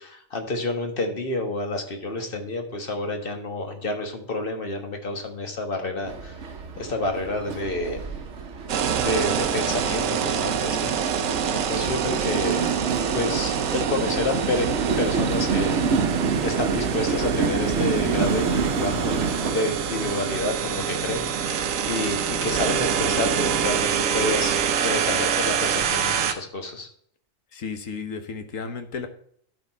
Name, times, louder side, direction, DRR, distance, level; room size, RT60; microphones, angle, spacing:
voice 1, 0.0-6.3 6.8-8.0 8.9-11.0 11.5-12.7 13.1-16.1 16.4-19.2 19.5-21.5 21.8-26.9, left 2 dB, 45° left, 5 dB, 1.6 m, -29 dB
Train, 6.1-19.5, right 5 dB, 65° right, 1.2 m, -28 dB
sound 1, 8.7-26.3, right 7 dB, 85° right, 1.2 m, -26 dB
voice 2, 27.5-29.1, left 5 dB, 80° left, 7 dB, 1.5 m, -33 dB
12.0 x 4.7 x 4.2 m, 0.63 s
omnidirectional pair, 1.3 m